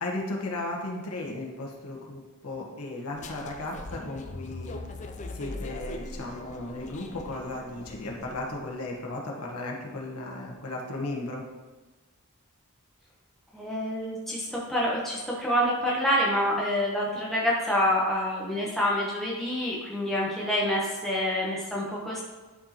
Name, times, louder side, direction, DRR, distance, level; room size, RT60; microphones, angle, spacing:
voice 1, 0.0-4.8 5.3-11.4, left 2 dB, 85° left, -1 dB, 1.3 m, -35 dB
sound 1, 3.1-8.7, left 2 dB, 35° left, 0.4 m, -40 dB
voice 2, 13.5-22.2, equal, ahead, -6 dB, 0.8 m, -27 dB
11.0 x 4.3 x 2.9 m, 1.2 s
head